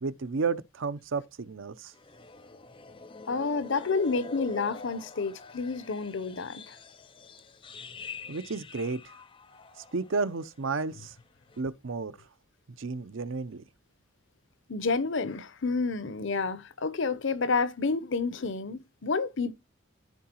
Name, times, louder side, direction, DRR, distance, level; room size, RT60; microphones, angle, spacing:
voice 1, 0.0-1.9 8.3-9.0 9.9-11.1 11.6-12.2 12.8-13.6, right 4 dB, 65° right, 0.6 m, -32 dB
sound 1, 1.9-10.5 10.8-11.1 11.5-11.6, left 4 dB, 25° left, 0.6 m, -46 dB
voice 2, 3.3-6.8 14.7-19.5, left 4 dB, 60° left, 0.8 m, -29 dB
14.0 x 4.7 x 3.0 m
head